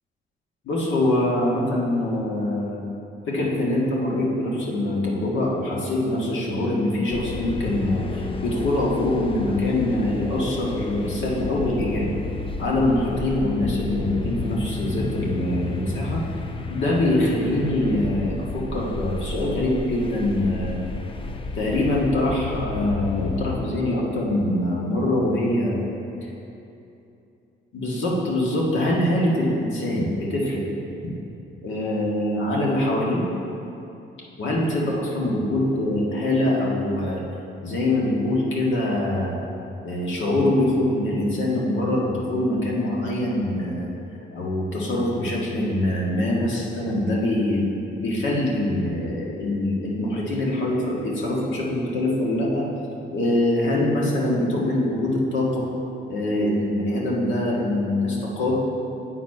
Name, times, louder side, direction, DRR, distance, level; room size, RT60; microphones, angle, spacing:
voice 1, 0.6-2.8 3.3-12.1 12.6-16.2 16.7-20.8 21.5-25.8 26.2-26.3 27.7-30.6 31.6-33.2 34.4-37.2 37.6-39.3 39.8-43.9 44.3-47.6 48.0-52.7 53.1-55.7 56.1-58.6, left 1 dB, 75° left, -4 dB, 1.7 m, -24 dB
sound 1, 7.1-23.6, left 3 dB, 25° left, 0.5 m, -32 dB
8.2 x 4.2 x 5.3 m, 2.8 s
cardioid pair, 90°, 20 cm